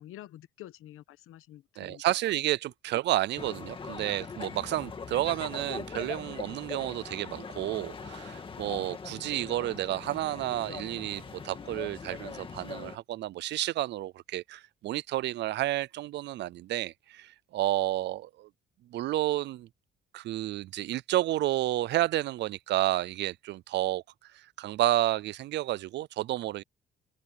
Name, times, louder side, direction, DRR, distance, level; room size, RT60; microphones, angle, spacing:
voice 1, 0.0-2.0, left 14 dB, 85° left, 1.1 m, -48 dB
voice 2, 1.8-18.5 18.9-19.7 20.1-24.0 24.3-26.6, right 15 dB, 55° right, 0.4 m, -31 dB
sound 1, 3.4-13.0, left 5 dB, 25° left, 2.0 m, -41 dB
cardioid pair, 175°, 21 cm